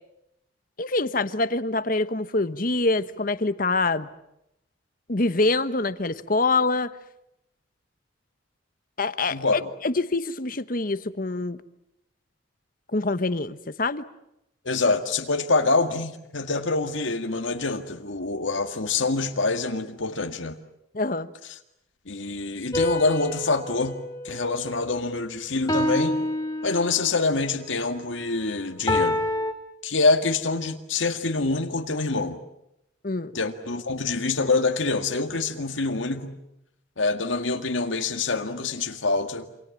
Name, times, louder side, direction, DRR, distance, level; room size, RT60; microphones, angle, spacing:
voice 1, 0.8-4.1 5.1-6.9 9.0-9.4 9.8-11.6 12.9-14.0 20.9-21.3 33.0-33.3, left 3 dB, 45° left, 1.1 m, -25 dB
voice 2, 9.3-9.7 14.6-20.6 22.1-26.2 26.6-29.2 29.8-32.4 33.3-36.4 37.0-39.5, left 3 dB, 80° left, 2.0 m, -25 dB
sound 1, 22.7-25.1 25.7-27.2 28.9-29.5, left 1 dB, 20° left, 2.7 m, -28 dB
28.0 x 26.0 x 7.4 m
head